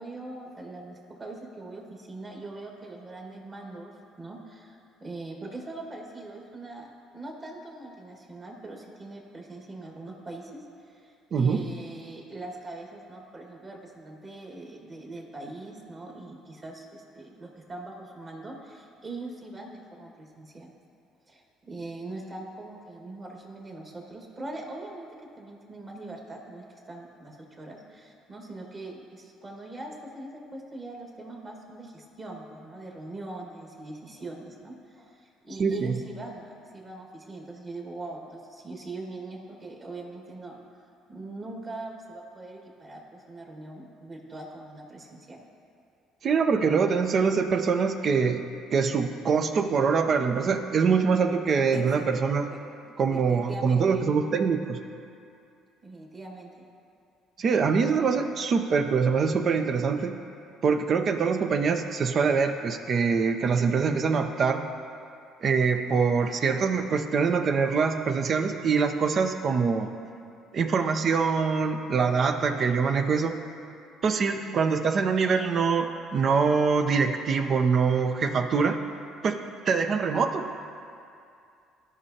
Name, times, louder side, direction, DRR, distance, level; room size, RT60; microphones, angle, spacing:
voice 1, 0.0-20.7 21.3-25.1 25.4-40.6 41.1-45.4 51.7-52.1 52.5-54.1 55.8-56.7, right 2 dB, 35° right, 0 dB, 1.8 m, -42 dB
voice 2, 11.3-11.6 35.6-36.0 46.2-48.4 48.7-52.5 53.0-54.8 57.4-60.2 60.6-64.6 65.4-69.9 70.5-73.4 74.0-78.8 79.2-79.4 79.7-80.5, right 5 dB, 50° right, 7 dB, 0.6 m, -24 dB
14.0 x 5.4 x 2.9 m, 2.5 s
hypercardioid pair, 65°, 0 cm